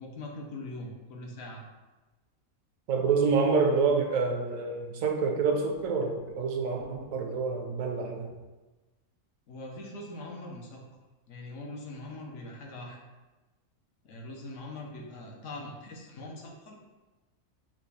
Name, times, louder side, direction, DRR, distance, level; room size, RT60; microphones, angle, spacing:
voice 1, 0.0-1.6 9.5-10.8 11.3-13.0 14.0-16.8, left 2 dB, 65° left, -1 dB, 1.0 m, -42 dB
voice 2, 2.9-8.3, right 4 dB, 75° right, 3 dB, 1.0 m, -27 dB
5.8 x 2.3 x 3.3 m, 1.2 s
omnidirectional pair, 1.5 m